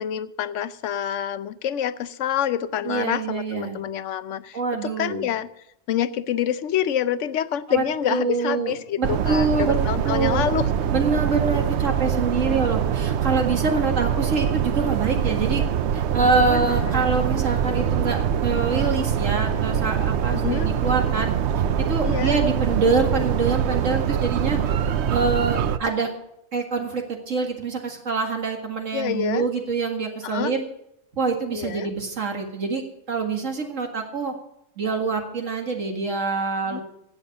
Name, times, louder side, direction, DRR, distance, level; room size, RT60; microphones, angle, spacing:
voice 1, 0.0-5.5 5.9-10.9 16.5-17.1 20.3-20.7 22.0-22.4 28.9-29.4 30.2-30.5 31.5-31.9 36.7-36.8, left 10 dB, 75° left, 15 dB, 1.0 m, -27 dB
voice 2, 2.8-3.8 4.5-5.3 7.7-9.8 10.0-10.5 10.9-15.7 15.9-21.3 21.9-24.6 25.1-26.1 26.5-30.6 31.1-32.8 33.1-34.3 34.8-36.8, right 4 dB, 90° right, 3 dB, 2.3 m, -25 dB
sound 1, 9.0-25.8, right 8 dB, 65° right, 0.9 m, -24 dB
16.0 x 7.2 x 6.7 m, 0.78 s
omnidirectional pair, 1.3 m